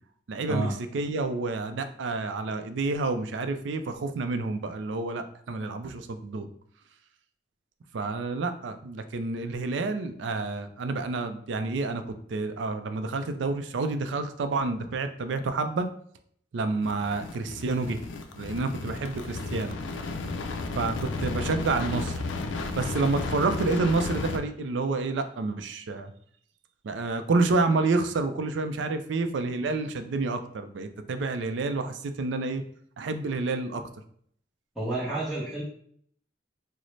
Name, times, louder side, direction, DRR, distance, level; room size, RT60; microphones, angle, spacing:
voice 1, 0.3-0.7 0.9-6.5 7.9-12.0 12.3-15.9 16.5-18.0 18.4-19.8 20.8-22.2 22.7-26.1 26.8-32.6 33.0-33.8, right 3 dB, 75° right, 9 dB, 0.4 m, -29 dB
sound 1, 16.8-24.4, left 3 dB, 90° left, 0.4 m, -33 dB
voice 2, 34.8-35.6, right 2 dB, ahead, -9 dB, 0.7 m, -29 dB
3.9 x 2.0 x 3.1 m, 0.63 s
head